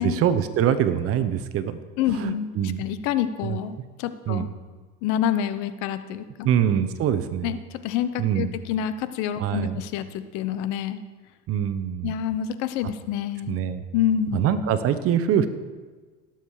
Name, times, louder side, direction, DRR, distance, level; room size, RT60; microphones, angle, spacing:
voice 1, 0.0-1.8 2.1-2.8 3.4-3.6 4.3-4.5 6.4-7.5 8.2-8.5 9.4-9.8 11.5-12.1 13.5-13.8 14.3-15.5, right 9 dB, 50° right, 12 dB, 1.0 m, -24 dB
voice 2, 2.0-4.5 5.0-6.5 7.4-11.0 12.0-13.6 13.9-14.5, left 9 dB, 70° left, 12 dB, 0.9 m, -27 dB
17.5 x 7.4 x 4.9 m, 1.4 s
supercardioid pair, 115°, 30 cm